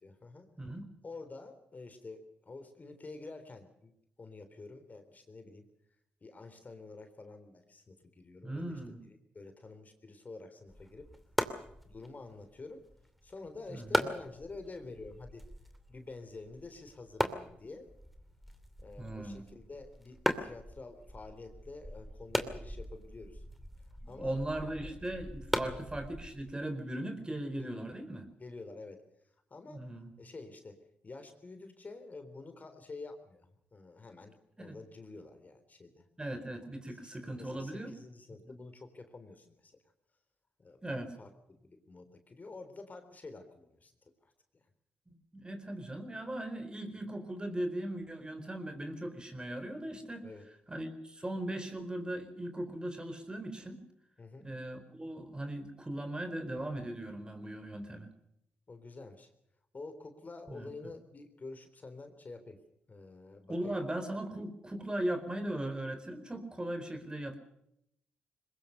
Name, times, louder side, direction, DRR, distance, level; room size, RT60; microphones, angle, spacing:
voice 1, 0.0-0.5 1.0-3.9 4.2-5.7 6.2-9.0 9.3-11.1 11.8-12.9 13.2-15.4 15.9-17.9 18.8-23.4 24.1-24.4 25.5-25.8 27.6-27.9 28.4-29.0 29.5-29.9 30.2-30.8 31.0-36.0 36.9-39.7 40.6-43.9 44.2-44.6 50.2-50.5 54.2-54.5 58.7-59.3 59.7-62.6 62.9-63.7, left 3 dB, 40° left, 8 dB, 3.6 m, -48 dB
voice 2, 0.6-0.9 8.4-9.0 13.7-14.1 19.0-19.5 24.0-28.2 29.7-30.1 34.6-34.7 36.2-37.9 40.8-41.1 45.3-50.3 50.7-53.8 54.4-58.1 60.5-60.7 63.5-67.4, right 1 dB, 20° right, 8 dB, 4.4 m, -38 dB
sound 1, 10.7-26.5, equal, ahead, 2.6 m, -39 dB
22.0 x 20.5 x 6.7 m, 0.76 s
supercardioid pair, 50°, 4 cm